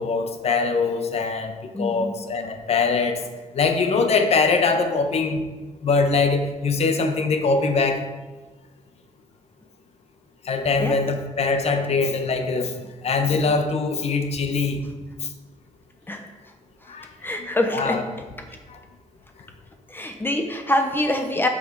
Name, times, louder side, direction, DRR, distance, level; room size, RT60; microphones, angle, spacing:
voice 1, 0.0-3.2 3.5-5.4 5.8-8.0 10.4-12.8 13.0-14.8 16.9-17.1 17.7-18.0 18.7-18.8, left 4 dB, 55° left, 6 dB, 1.0 m, -22 dB
voice 2, 1.7-2.1 10.8-11.0 16.1-16.3 16.8-16.9 17.2-18.0 19.9-21.5, left 1 dB, 15° left, 5 dB, 0.7 m, -25 dB
9.0 x 6.3 x 4.7 m, 1.2 s
wide cardioid pair, 160°, 13 cm